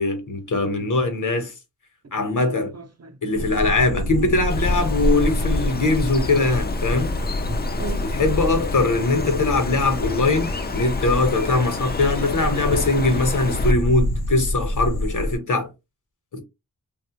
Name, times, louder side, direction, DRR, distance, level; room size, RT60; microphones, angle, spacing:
voice 1, 0.0-1.5 2.1-2.8 3.2-7.1 8.1-15.7 16.3-16.4, left 3 dB, 60° left, 1.0 m, -21 dB
voice 2, 2.3-3.5 7.5-8.1 14.8-15.0, right 4 dB, 45° right, 0.7 m, -37 dB
sound 1, 3.3-15.4, equal, 85° left, 0.8 m, -27 dB
Bird, 4.5-13.7, left 3 dB, 30° left, 0.4 m, -29 dB
3.1 x 2.3 x 2.9 m
wide cardioid pair, 65°, 36 cm